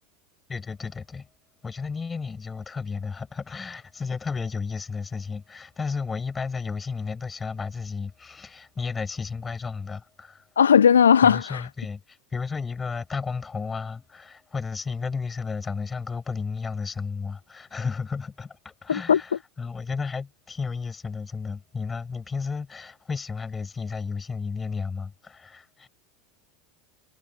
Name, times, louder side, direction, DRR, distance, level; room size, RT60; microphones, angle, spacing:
voice 1, 0.5-1.3 1.6-10.5 11.2-25.9, left 5 dB, 20° left, 6.6 m, -33 dB
voice 2, 10.6-11.7 18.9-19.2, left 7 dB, 80° left, 0.5 m, -17 dB
figure-of-eight pair, 80°, 0 cm